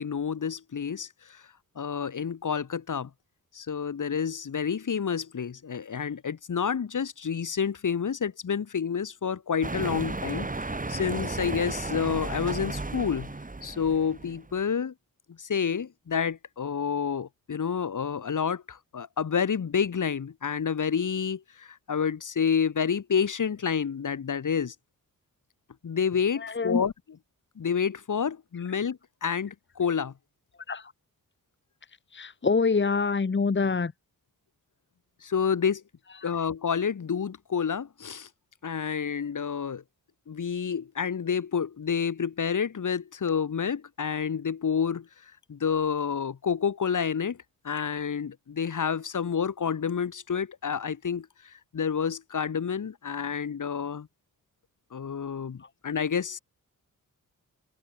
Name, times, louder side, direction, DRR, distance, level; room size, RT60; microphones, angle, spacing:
voice 1, 0.0-1.4 1.8-3.1 3.5-13.3 13.6-14.9 15.4-24.7 25.8-26.9 27.6-30.1 35.2-35.8 36.2-38.3 38.6-39.8 40.3-45.1 45.5-47.4 47.6-54.1 54.9-56.4, left 7 dB, 60° left, 3.9 m, -29 dB
sound 1, 9.6-14.6, right 2 dB, 25° right, 6.2 m, -34 dB
voice 2, 26.4-26.8 30.7-30.9 32.1-33.9 36.2-36.3 55.6-55.7, left 4 dB, 35° left, 1.8 m, -26 dB
cardioid pair, 90°, 34 cm